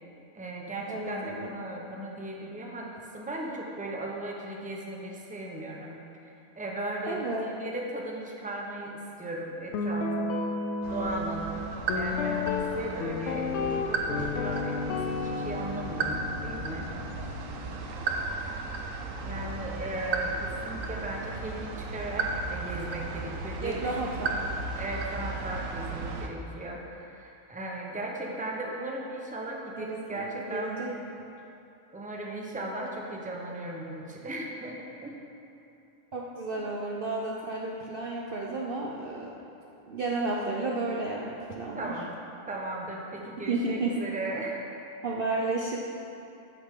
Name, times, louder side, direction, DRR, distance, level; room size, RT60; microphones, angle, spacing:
voice 1, 0.3-6.0 6.2-10.4 10.9-11.6 11.9-16.9 19.2-24.0 24.8-30.8 31.9-35.2 36.5-36.6 41.8-42.1 42.5-44.6, right 1 dB, 5° right, -1 dB, 0.8 m, -37 dB
voice 2, 0.9-1.5 7.0-7.5 23.6-24.4 29.8-30.9 36.1-39.3 39.9-41.9 43.5-43.9 45.0-45.8, right 3 dB, 50° right, -2 dB, 0.8 m, -32 dB
Guitar, 9.7-17.9, left 4 dB, 65° left, 0.9 m, -32 dB
sound 1, 10.8-26.3, right 3 dB, 70° right, 1.2 m, -35 dB
13.5 x 6.9 x 3.8 m, 2.7 s
omnidirectional pair, 1.4 m